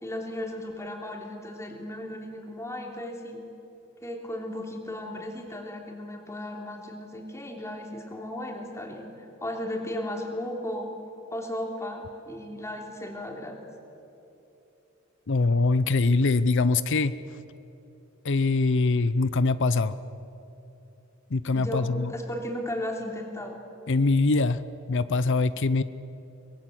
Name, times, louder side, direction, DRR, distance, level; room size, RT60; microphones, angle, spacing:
voice 1, 0.0-3.4 4.0-10.9 11.3-13.6 21.5-23.6, left 1 dB, 15° left, 1 dB, 3.2 m, -35 dB
voice 2, 15.3-17.1 18.2-20.0 21.3-22.1 23.9-24.6 24.9-25.8, left 3 dB, 60° left, 14 dB, 0.7 m, -23 dB
24.5 x 21.5 x 7.8 m, 2.9 s
head